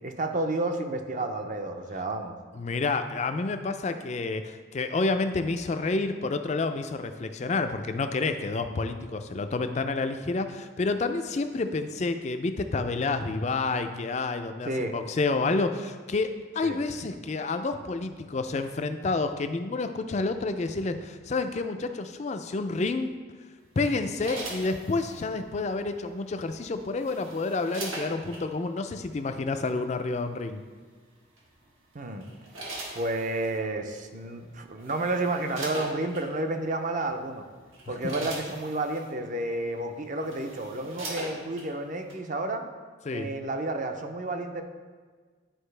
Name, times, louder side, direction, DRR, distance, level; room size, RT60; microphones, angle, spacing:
voice 1, 0.0-2.3 14.6-15.0 16.6-16.8 31.9-32.2 32.9-37.5 37.9-42.6 43.1-44.6, right 2 dB, 40° right, 5 dB, 0.6 m, -31 dB
voice 2, 2.5-23.1 23.8-30.6 37.9-38.0 43.1-43.3, left 3 dB, 35° left, 8 dB, 0.4 m, -29 dB
sound 1, 23.9-25.2 26.6-28.4 29.5-29.7 31.4-31.7 32.2-33.6 34.4-34.5 34.8-36.3 37.0-37.2 37.6-39.1 39.8-39.9 40.1-41.7 42.1-42.2, right 2 dB, 90° right, 1.8 m, -40 dB
10.0 x 4.9 x 3.3 m, 1.5 s
head